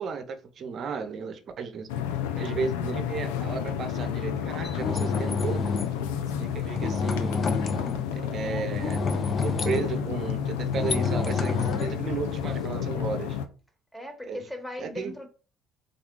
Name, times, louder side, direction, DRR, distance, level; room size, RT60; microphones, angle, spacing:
voice 1, 0.0-1.9 2.4-5.7 6.4-7.5 8.1-9.0 9.4-13.4 14.2-14.4 14.8-15.1, right 5 dB, 50° right, 0.6 m, -34 dB
sound 1, 1.9-13.5, left 8 dB, 90° left, 0.4 m, -31 dB
sound 2, 4.6-6.0 6.7-8.1 8.7-12.7, left 4 dB, 40° left, 0.5 m, -29 dB
voice 2, 8.3-8.8 13.9-15.3, left 1 dB, 5° left, 1.1 m, -39 dB
3.5 x 2.3 x 3.7 m
supercardioid pair, 75°, 0 cm